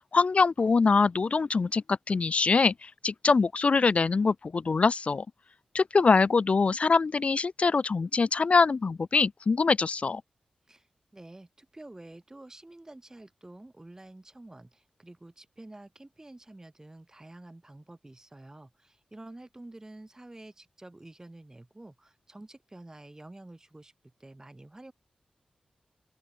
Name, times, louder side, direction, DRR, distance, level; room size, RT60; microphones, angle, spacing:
voice 1, 0.1-5.3 5.7-10.2, left 4 dB, 55° left, 0.6 m, -24 dB
voice 2, 11.1-23.9 24.2-24.9, right 2 dB, 25° right, 6.4 m, -49 dB
open air
cardioid pair, 60°, 3 cm